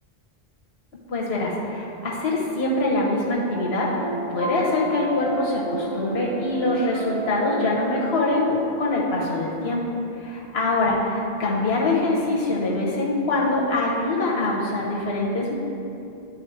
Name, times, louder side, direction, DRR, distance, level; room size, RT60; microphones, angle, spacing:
voice 1, 1.1-9.9 10.2-15.5, left 2 dB, 80° left, -3 dB, 1.2 m, -24 dB
sound 1, 3.4-9.1, right 2 dB, 30° right, 1.1 m, -32 dB
9.9 x 3.8 x 4.8 m, 2.7 s
omnidirectional pair, 1.1 m